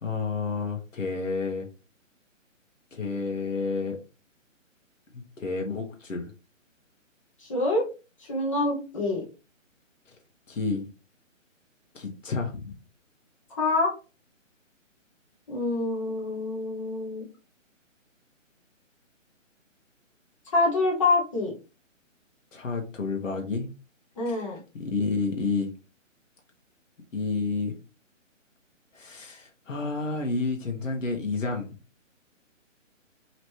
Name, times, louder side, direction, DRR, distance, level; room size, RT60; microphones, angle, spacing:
voice 1, 0.0-1.7 2.9-4.0 5.1-6.3 10.5-10.9 11.9-12.7 22.5-23.7 24.3-24.4 24.7-25.7 27.1-27.7 28.9-31.7, left 4 dB, 70° left, 2 dB, 1.3 m, -30 dB
voice 2, 7.4-7.9 8.2-9.2 13.6-13.9 15.5-17.2 20.5-21.5 24.2-24.6, left 2 dB, 25° left, -2 dB, 1.1 m, -26 dB
4.1 x 3.1 x 3.1 m, 0.32 s
hypercardioid pair, 170°, 39 cm